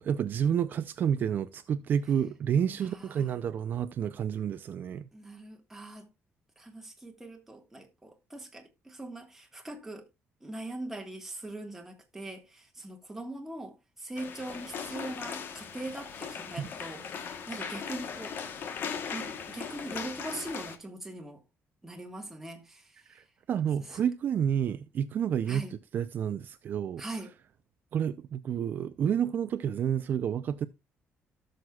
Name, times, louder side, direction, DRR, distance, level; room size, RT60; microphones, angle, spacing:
voice 1, 0.0-5.1 16.6-16.7 23.1-27.0 27.9-30.7, right 8 dB, 45° right, 0.4 m, -30 dB
voice 2, 2.9-3.3 5.1-6.1 6.6-10.1 10.4-18.4 19.1-21.4 21.8-23.0 25.4-25.7 27.0-27.3, right 2 dB, 5° right, 1.5 m, -41 dB
sound 1, 14.2-20.8, left 6 dB, 50° left, 1.1 m, -39 dB
17.5 x 6.4 x 2.3 m
cardioid pair, 170°, 5 cm